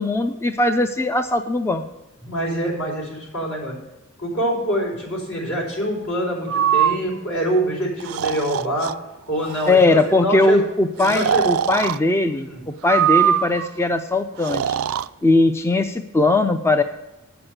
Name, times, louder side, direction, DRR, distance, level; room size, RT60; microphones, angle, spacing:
voice 1, 0.0-1.8 9.7-14.8 15.2-16.8, left 2 dB, 10° left, 8 dB, 0.4 m, -19 dB
voice 2, 2.2-3.7 4.2-8.9 9.3-10.6 11.0-11.5 12.3-12.6, equal, 75° left, -3 dB, 4.6 m, -25 dB
Breathing, 6.5-7.0 8.0-8.9 9.4-9.8 11.0-12.0 12.8-13.7 14.4-15.1, right 9 dB, 85° right, 0.4 m, -21 dB
8.7 x 6.1 x 7.8 m, 0.98 s
head